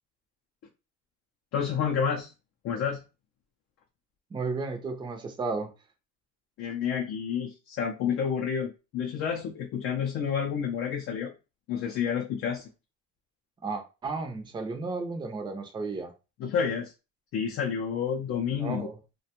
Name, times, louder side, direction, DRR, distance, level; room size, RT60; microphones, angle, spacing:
voice 1, 1.5-2.3 2.6-3.0 6.6-11.3 11.7-12.7 16.4-16.9 17.3-18.9, left 7 dB, 50° left, 0 dB, 0.5 m, -29 dB
voice 2, 4.3-5.7 13.6-16.1 18.6-19.0, right 4 dB, 15° right, 4 dB, 0.5 m, -33 dB
2.5 x 2.2 x 2.8 m, 0.29 s
cardioid pair, 150°, 30 cm